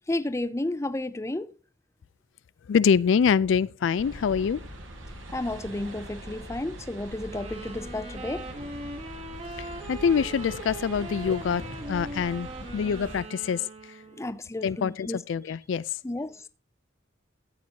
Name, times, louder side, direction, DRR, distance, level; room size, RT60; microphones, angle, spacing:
voice 1, 0.1-1.5 5.3-8.5 14.2-15.2 16.0-16.4, left 2 dB, 15° left, 0.5 m, -32 dB
voice 2, 2.7-4.6 9.6-13.6 14.6-16.0, left 6 dB, 70° left, 0.3 m, -25 dB
sound 1, 4.0-13.2, right 1 dB, 80° right, 1.7 m, -42 dB
Wind instrument woodwind instrument, 7.3-14.5, right 2 dB, 30° right, 1.2 m, -41 dB
13.5 x 8.2 x 2.8 m
head